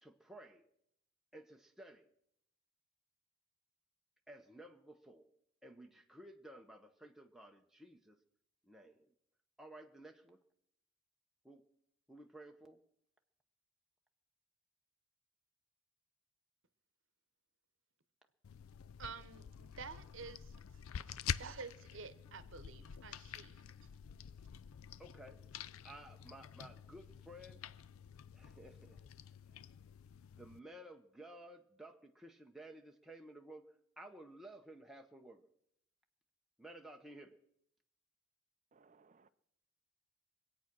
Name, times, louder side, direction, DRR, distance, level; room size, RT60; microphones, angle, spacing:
voice 1, 0.0-0.6 1.3-2.1 4.3-5.3 5.6-8.2 8.6-9.1 9.6-10.4 11.4-11.6 12.1-12.8 25.0-25.4 25.8-27.7 28.3-29.0 30.4-33.6 34.0-35.4 36.6-37.4, right 1 dB, ahead, 0.8 m, -55 dB
sound 1, 18.4-30.6, left 8 dB, 85° left, 0.4 m, -48 dB
voice 2, 19.0-23.6, right 5 dB, 65° right, 0.9 m, -50 dB
voice 3, 38.7-39.3, right 4 dB, 35° right, 0.5 m, -66 dB
22.5 x 8.6 x 6.0 m
head